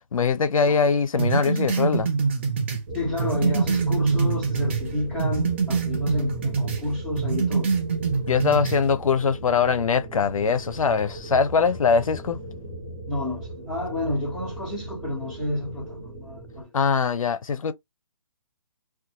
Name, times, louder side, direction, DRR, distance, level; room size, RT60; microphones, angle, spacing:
voice 1, 0.1-2.1 8.3-12.4 16.7-17.7, left 5 dB, 85° left, 0.5 m, -22 dB
sound 1, 1.2-4.9 5.2-6.8 7.2-8.8, right 5 dB, 20° right, 0.4 m, -25 dB
voice 2, 2.9-7.7 13.1-16.7, left 1 dB, 5° right, 1.1 m, -30 dB
sound 2, 2.9-16.6, right 1 dB, 40° right, 0.9 m, -37 dB
2.6 x 2.3 x 2.8 m
hypercardioid pair, 160°, 17 cm